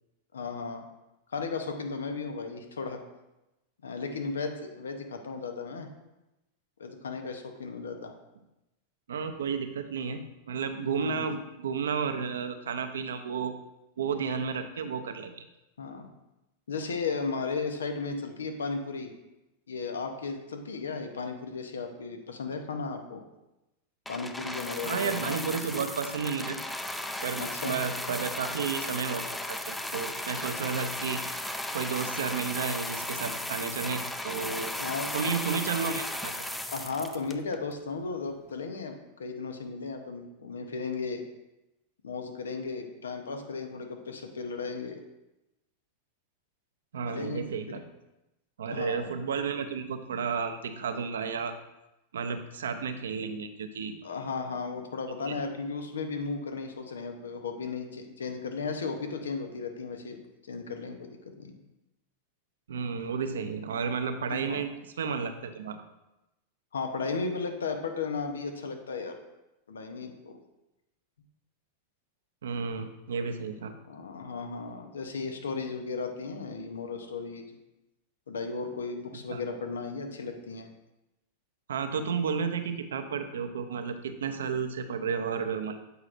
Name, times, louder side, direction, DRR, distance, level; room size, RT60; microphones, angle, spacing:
voice 1, 0.3-0.9 1.3-3.0 3.8-5.9 6.8-8.1 10.9-11.3 15.8-16.1 16.7-19.1 19.7-23.2 24.1-25.9 27.4-27.7 34.8-35.1 36.7-41.2 42.0-45.0 47.0-47.8 48.7-49.1 54.0-60.2 60.5-61.6 64.3-64.6 66.7-69.2 69.7-70.4 73.9-77.6 78.3-80.7, left 4 dB, 90° left, 5 dB, 0.8 m, -35 dB
voice 2, 9.1-10.2 10.5-13.6 14.0-15.4 24.8-26.6 27.2-31.2 31.7-34.7 35.1-36.3 46.9-47.8 48.6-51.5 52.1-54.0 55.3-55.4 62.7-65.8 72.4-73.7 79.3-79.4 81.7-85.8, right 6 dB, 85° right, 8 dB, 0.6 m, -32 dB
sound 1, 24.1-37.7 38.5-38.6, left 1 dB, 5° left, 0.5 m, -35 dB
8.0 x 4.8 x 2.6 m, 0.95 s
hypercardioid pair, 105°, 0 cm